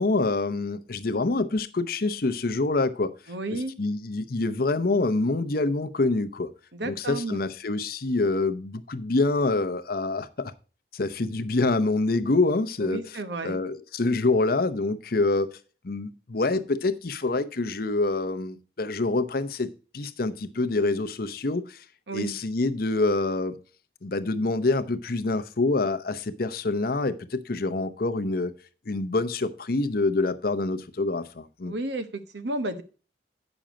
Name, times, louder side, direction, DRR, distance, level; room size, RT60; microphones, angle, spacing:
voice 1, 0.0-3.1 3.5-6.5 6.8-10.5 10.9-13.2 13.4-15.5 15.8-21.8 22.1-23.6 24.0-28.5 28.9-31.7, left 3 dB, 55° left, 12 dB, 0.7 m, -26 dB
voice 2, 3.3-3.7 6.7-7.4 12.8-13.6 22.1-22.3 31.7-32.8, right 2 dB, 70° right, 10 dB, 1.0 m, -32 dB
8.8 x 6.2 x 5.1 m, 0.36 s
head